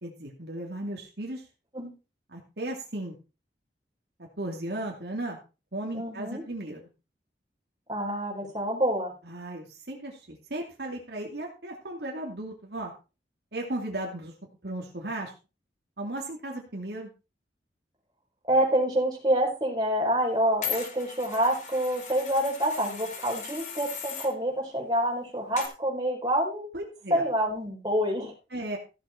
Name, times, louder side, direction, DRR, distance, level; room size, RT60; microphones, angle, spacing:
voice 1, 0.0-1.4 2.3-3.1 4.4-5.4 5.7-6.8 9.2-12.9 13.5-14.3 14.6-15.3 16.0-17.1 26.7-27.2 28.5-28.8, right 1 dB, 65° right, 0 dB, 2.5 m, -35 dB
voice 2, 5.9-6.4 7.9-9.1 18.4-26.7 27.1-28.3, right 1 dB, 25° right, -2 dB, 4.6 m, -27 dB
sound 1, 20.6-24.3 25.6-25.7, left 7 dB, 40° left, 2.4 m, -38 dB
15.0 x 7.2 x 4.4 m, 0.32 s
head